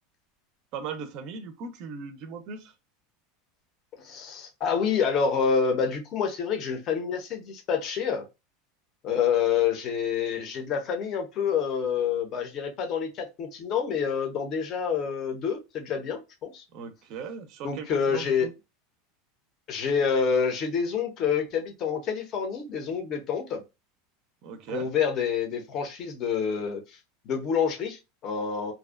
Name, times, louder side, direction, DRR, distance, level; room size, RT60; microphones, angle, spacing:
voice 1, 0.7-2.7 16.7-18.5 24.4-24.9, right 6 dB, 40° right, 0.4 m, -38 dB
voice 2, 4.0-8.2 9.0-16.6 17.6-18.5 19.7-23.6 24.7-26.8 27.3-28.7, left 6 dB, 35° left, 0.6 m, -27 dB
2.5 x 2.1 x 2.3 m
supercardioid pair, 165°, 0 cm